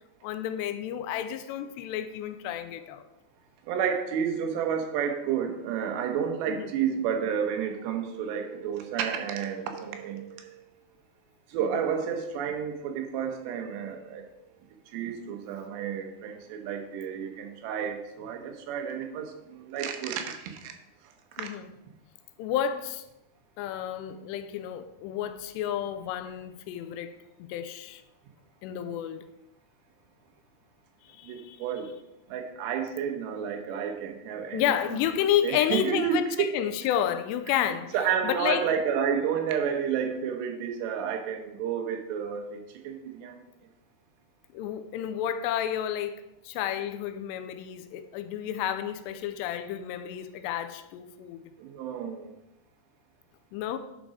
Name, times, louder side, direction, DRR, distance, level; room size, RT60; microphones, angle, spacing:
voice 1, 0.2-3.1 6.5-6.7 11.6-11.7 21.4-21.7 22.4-23.0 23.6-27.1 27.4-28.0 28.6-29.3 31.1-31.6 34.5-37.9 38.2-38.7 44.5-51.4 53.5-53.8, left 10 dB, 90° left, 2.8 m, -31 dB
voice 2, 3.7-10.7 11.5-14.2 14.9-20.7 21.4-21.5 31.2-31.9 32.3-35.0 35.4-36.2 37.9-43.4 51.6-52.3, right 7 dB, 90° right, 3.2 m, -31 dB
10.5 x 5.2 x 4.9 m
omnidirectional pair, 4.8 m